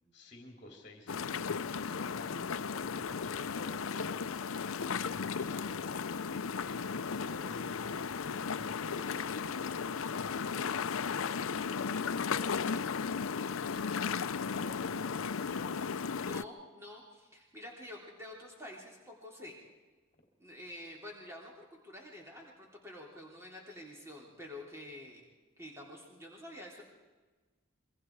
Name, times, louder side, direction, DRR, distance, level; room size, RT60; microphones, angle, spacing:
voice 1, 0.1-15.8, left 1 dB, 35° left, 1 dB, 3.1 m, -52 dB
sound 1, 1.1-16.4, left 6 dB, 85° left, 0.6 m, -35 dB
voice 2, 16.2-19.6 20.4-25.2 25.6-26.8, left 1 dB, 15° right, -2 dB, 3.4 m, -48 dB
27.0 x 24.0 x 4.7 m, 1.3 s
head